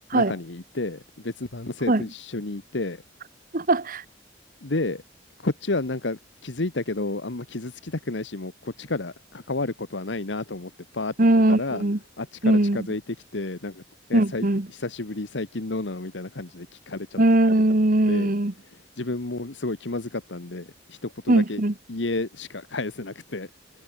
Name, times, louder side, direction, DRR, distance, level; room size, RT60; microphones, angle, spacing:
voice 1, 0.1-3.0 4.6-5.0 5.4-11.1 11.5-11.8 12.2-13.8 14.1-14.4 14.7-17.2 18.1-18.3 18.7-21.6 21.9-23.5, left 2 dB, 75° left, 1.4 m, -31 dB
voice 2, 3.5-4.0 11.2-12.0 12.4-12.8 14.1-14.7 17.2-18.5 21.3-21.7, right 1 dB, 50° right, 1.4 m, -20 dB
head